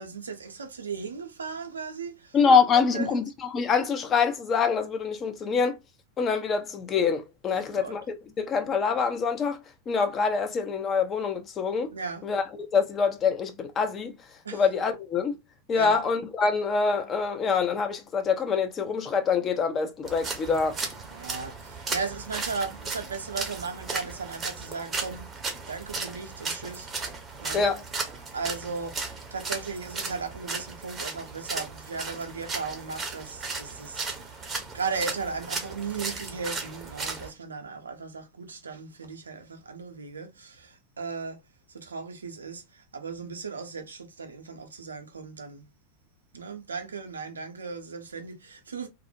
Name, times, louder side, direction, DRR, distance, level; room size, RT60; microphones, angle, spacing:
voice 1, 0.0-2.4 2.7-3.2 7.5-7.9 11.9-12.3 14.4-14.7 15.7-16.0 20.4-20.6 21.1-26.9 27.4-27.6 28.3-41.4 41.7-45.7 46.3-48.9, right 5 dB, 70° right, 0.5 m, -36 dB
voice 2, 2.3-3.2 3.5-5.8 6.2-9.6 9.9-11.9 12.2-14.1 14.5-15.4 15.7-20.8 27.5-27.8, left 5 dB, 25° left, 0.4 m, -25 dB
sound 1, 20.0-37.3, right 4 dB, 20° right, 0.6 m, -36 dB
2.4 x 2.0 x 2.5 m
figure-of-eight pair, 90°, 0 cm